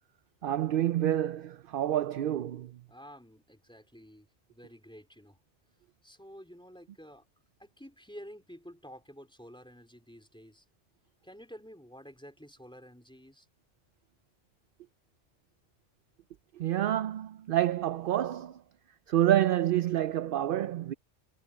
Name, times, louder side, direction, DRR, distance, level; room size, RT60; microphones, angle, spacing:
voice 1, 0.4-2.7 16.6-18.6 19.1-20.9, right 12 dB, 60° right, 0.6 m, -28 dB
voice 2, 2.9-5.4 6.0-7.3 7.6-10.6 11.2-13.5, equal, 5° left, 3.9 m, -50 dB
omnidirectional pair, 1.2 m